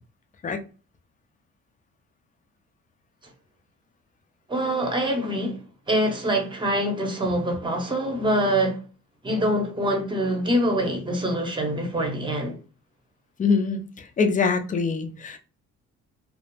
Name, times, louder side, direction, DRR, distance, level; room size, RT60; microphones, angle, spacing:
voice 1, 4.5-5.6 5.9-8.8 9.2-12.6, right 1 dB, 15° right, 0.8 m, -24 dB
voice 2, 13.4-15.4, left 5 dB, 25° left, 0.5 m, -24 dB
2.5 x 2.0 x 2.9 m
cardioid pair, 90°, 30 cm